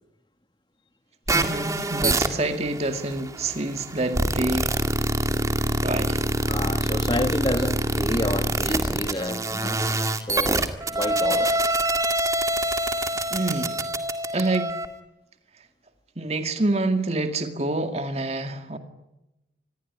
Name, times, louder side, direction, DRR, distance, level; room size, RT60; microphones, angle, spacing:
sound 1, 1.3-14.9, right 1 dB, 20° right, 2.0 m, -25 dB
voice 1, 1.3-4.8 5.8-6.2 13.3-13.8 14.3-14.8 16.2-18.8, right 2 dB, 35° right, 2.2 m, -27 dB
voice 2, 6.5-9.8 10.2-11.6, left 1 dB, 25° left, 1.7 m, -29 dB
27.5 x 21.0 x 9.6 m
head